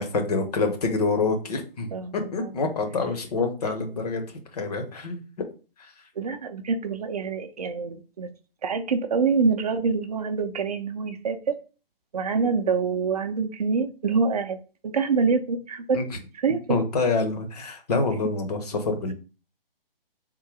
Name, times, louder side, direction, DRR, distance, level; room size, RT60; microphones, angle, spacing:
voice 1, 0.0-4.2 4.5-5.2 5.8-5.9 15.9-16.2 16.7-19.1, left 3 dB, 40° left, 6 dB, 0.9 m, -26 dB
voice 2, 1.9-2.6 6.2-8.3 8.6-11.6 12.1-16.0 16.3-16.8, right 5 dB, 40° right, 7 dB, 0.5 m, -26 dB
3.7 x 2.6 x 4.7 m, 0.35 s
figure-of-eight pair, 140°, 30 cm